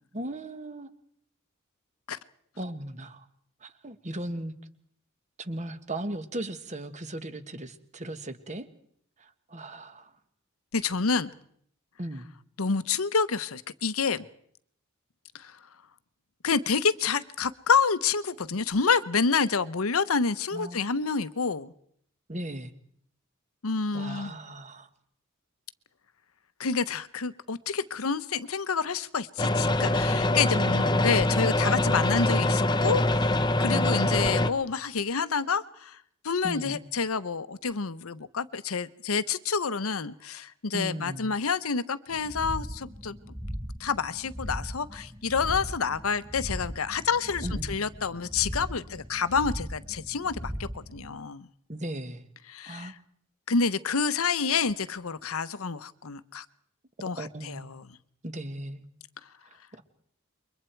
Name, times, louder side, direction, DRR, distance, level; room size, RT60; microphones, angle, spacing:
voice 1, 0.1-0.9 2.6-3.3 3.6-4.5 5.4-8.7 9.2-10.1 12.0-12.3 20.5-20.9 22.3-22.7 23.9-24.9 30.1-31.3 33.7-34.2 36.4-36.8 40.7-41.3 47.4-47.7 51.7-52.3 52.7-52.9 57.0-57.8 58.2-58.9 59.5-59.8, right 1 dB, 35° right, 1.6 m, -37 dB
voice 2, 10.7-11.3 12.6-14.3 15.3-15.6 16.4-21.7 23.6-24.4 26.6-36.0 36.2-43.2 43.8-51.5 52.5-53.0 53.5-56.4 57.0-57.9, left 5 dB, 85° left, 0.9 m, -28 dB
sound 1, 29.4-34.5, left 1 dB, 20° left, 0.8 m, -24 dB
sound 2, 42.1-51.1, equal, 15° right, 4.5 m, -38 dB
28.5 x 23.5 x 4.6 m
head